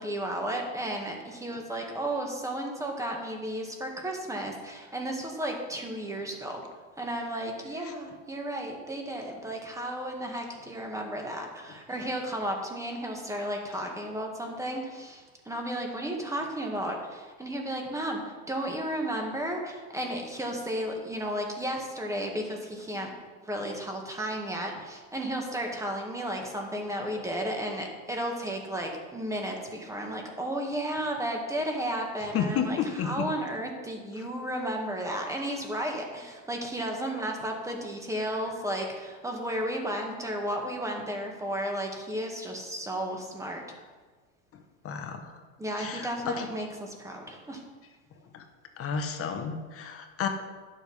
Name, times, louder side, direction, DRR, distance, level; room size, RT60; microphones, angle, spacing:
voice 1, 0.0-6.6 7.0-23.1 23.4-43.6 45.6-47.6, right 1 dB, 5° right, 1 dB, 1.9 m, -33 dB
voice 2, 32.3-33.3 44.8-45.2 45.8-46.5 48.3-48.4 48.8-50.3, left 6 dB, 35° left, 6 dB, 1.3 m, -31 dB
11.5 x 7.4 x 5.6 m, 1.4 s
supercardioid pair, 125°, 42 cm